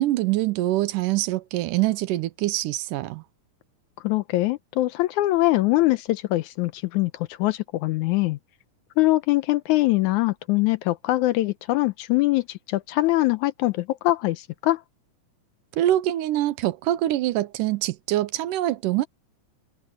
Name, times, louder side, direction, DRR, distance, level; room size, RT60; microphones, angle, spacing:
voice 1, 0.0-3.2 15.8-19.1, right 14 dB, 85° right, 2.3 m, -24 dB
voice 2, 4.0-8.4 9.0-14.8, left 18 dB, 80° left, 1.9 m, -23 dB
omnidirectional pair, 3.7 m